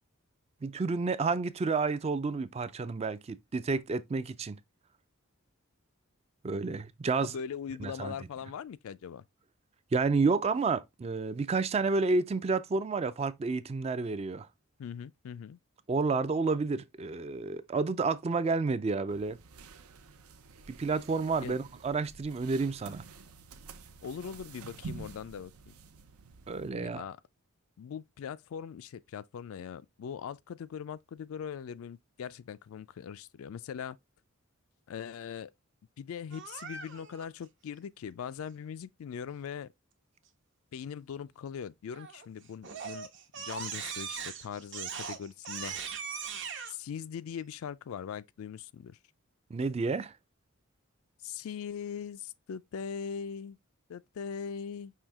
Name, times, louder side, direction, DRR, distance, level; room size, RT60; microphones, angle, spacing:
voice 1, 0.6-4.6 6.4-7.3 7.8-8.1 9.9-14.5 15.9-19.4 20.7-23.0 26.5-27.1 49.5-50.1, right 4 dB, 30° right, 0.3 m, -30 dB
voice 2, 7.2-9.2 14.8-15.6 21.4-21.6 24.0-25.7 26.8-27.2 27.8-34.0 34.9-35.5 36.0-39.7 40.7-43.1 43.3-45.8 46.7-49.0 51.2-53.6 53.9-54.9, left 7 dB, 70° left, 0.3 m, -41 dB
sound 1, 19.1-26.7, right 4 dB, 85° right, 0.6 m, -49 dB
Crying sobbing, 36.3-37.3 41.9-42.3 42.6-46.7, right 6 dB, 55° right, 0.8 m, -40 dB
5.6 x 2.8 x 3.4 m
head